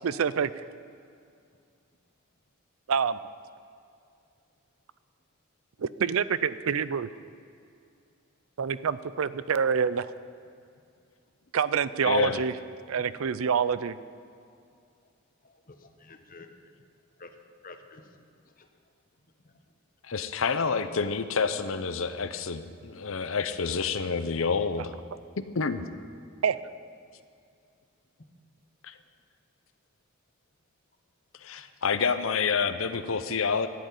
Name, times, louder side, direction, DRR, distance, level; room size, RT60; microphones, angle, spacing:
voice 1, 0.0-0.5 2.9-3.2 5.8-7.1 8.6-10.1 11.5-12.5 12.9-14.0 26.4-26.6, right 6 dB, 75° right, 16 dB, 0.5 m, -26 dB
voice 2, 12.0-12.4 20.0-25.0 25.5-25.8 28.8-29.0 31.4-33.7, left 5 dB, 70° left, 11 dB, 0.7 m, -28 dB
voice 3, 15.4-16.5 17.2-17.4 17.6-18.2 18.6-18.7 19.4-19.6, left 3 dB, 40° left, 6 dB, 1.1 m, -50 dB
13.0 x 7.9 x 9.4 m, 2.4 s
head